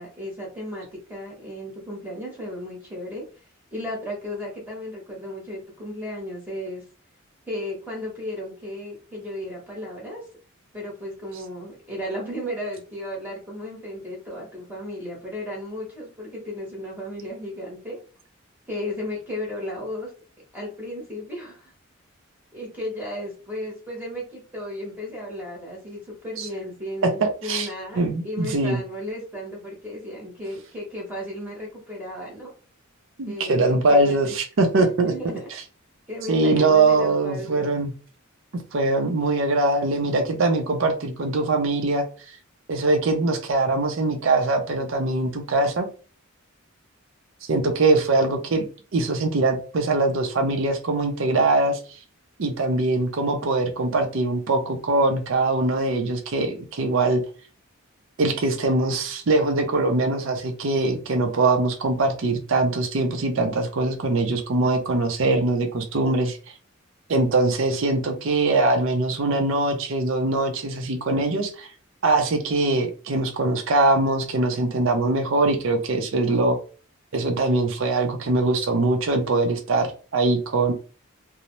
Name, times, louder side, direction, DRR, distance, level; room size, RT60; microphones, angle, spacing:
voice 1, 0.0-3.3 3.7-6.8 7.5-10.2 10.7-18.0 18.7-20.1 20.5-21.7 22.5-32.5 33.3-34.3 34.8-35.5 36.1-37.7, left 1 dB, 10° right, -3 dB, 0.9 m, -34 dB
voice 2, 27.0-27.7 27.9-28.8 33.2-35.4 36.3-37.9 38.7-42.1 42.7-45.9 47.5-48.7 48.9-51.8 52.4-57.2 58.2-66.4 67.1-71.7 72.0-76.6 77.1-80.7, right 2 dB, 65° right, 3 dB, 0.5 m, -22 dB
2.6 x 2.0 x 3.0 m, 0.37 s
head